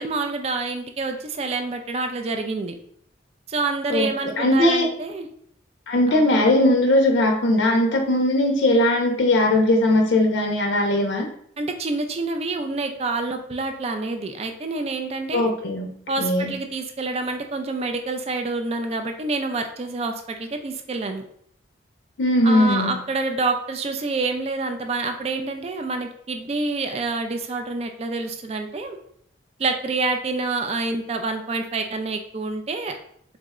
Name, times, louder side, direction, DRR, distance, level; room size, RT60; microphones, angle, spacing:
voice 1, 0.0-2.8 3.5-5.3 6.1-6.2 11.6-15.5 16.1-21.2 22.4-29.0 29.6-32.9, right 3 dB, 35° right, 6 dB, 0.3 m, -27 dB
voice 2, 4.4-4.9 5.9-11.3 15.3-16.6 22.2-23.0, left 1 dB, 75° left, 2 dB, 0.5 m, -19 dB
3.7 x 2.1 x 3.5 m, 0.66 s
head